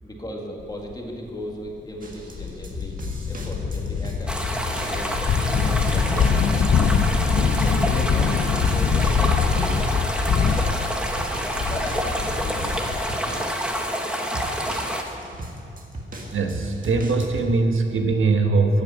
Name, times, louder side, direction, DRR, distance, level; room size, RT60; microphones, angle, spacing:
voice 1, 0.0-3.0 3.3-4.4 4.9-6.5 7.6-9.8 10.1-10.6 11.6-13.6, equal, 20° left, 0 dB, 1.8 m, -37 dB
sound 1, 0.9-1.0 1.7-1.8 2.1-13.1, left 6 dB, 60° left, 0.7 m, -23 dB
sound 2, 2.0-17.5, right 1 dB, 40° right, 1.7 m, -37 dB
sound 3, 4.3-15.0, equal, 5° right, 1.1 m, -28 dB
voice 2, 16.3-18.8, right 3 dB, 75° right, 4 dB, 1.2 m, -21 dB
13.5 x 8.9 x 8.2 m, 2.7 s
wide cardioid pair, 165°, 21 cm